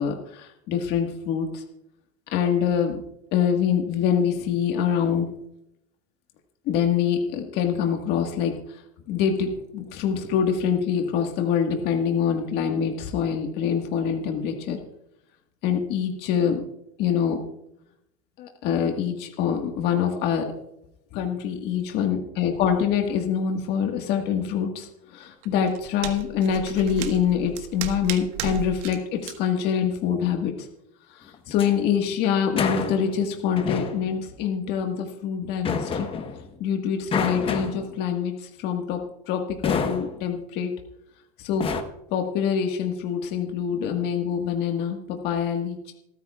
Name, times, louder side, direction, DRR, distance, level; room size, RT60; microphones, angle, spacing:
voice 1, 0.0-1.6 2.3-3.0 3.3-5.2 6.7-8.6 9.1-14.8 15.6-16.6 17.0-17.4 18.4-20.4 21.1-30.7 31.1-36.1 36.6-39.0 39.3-40.7 41.4-41.7 42.1-45.9, left 8 dB, 55° left, 3 dB, 1.6 m, -25 dB
sound 1, 25.4-29.0 29.2-29.3, right 9 dB, 75° right, 1.5 m, -34 dB
sound 2, 31.3-31.8 32.6-33.2 33.6-34.2 35.6-36.5 37.1-38.0 39.6-40.2 41.6-41.8, left 5 dB, 25° left, 1.2 m, -28 dB
27.0 x 9.3 x 2.4 m, 0.81 s
supercardioid pair, 130°, 20 cm